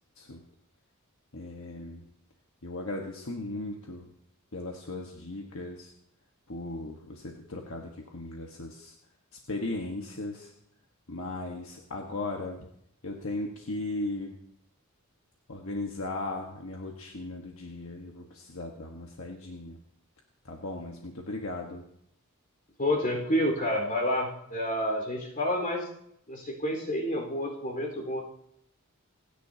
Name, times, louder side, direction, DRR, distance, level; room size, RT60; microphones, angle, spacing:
voice 1, 1.3-2.0 2.6-4.0 4.5-5.9 6.5-8.9 9.5-10.5 11.1-12.7 13.0-14.4 15.5-19.8 20.4-21.8, left 2 dB, 70° left, 1 dB, 1.4 m, -37 dB
voice 2, 22.8-25.9 26.3-28.2, left 1 dB, 40° left, 0 dB, 4.2 m, -29 dB
28.0 x 10.0 x 2.8 m, 0.73 s
head